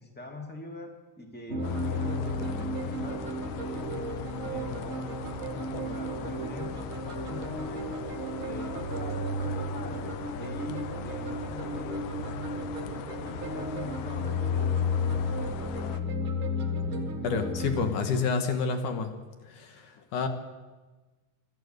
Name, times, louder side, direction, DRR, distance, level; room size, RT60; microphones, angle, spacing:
voice 1, 0.0-3.2 3.6-4.1 4.4-5.1 5.3-7.9 8.4-12.1 13.1-14.7, left 2 dB, 10° left, 3 dB, 0.6 m, -44 dB
sound 1, 1.5-17.9, left 1 dB, 45° right, 1.8 m, -33 dB
sound 2, 1.6-16.0, left 9 dB, 90° left, 1.9 m, -40 dB
voice 2, 17.2-19.2 19.4-20.3, left 5 dB, 60° left, 7 dB, 2.4 m, -29 dB
26.0 x 12.0 x 8.2 m, 1.2 s
omnidirectional pair, 5.1 m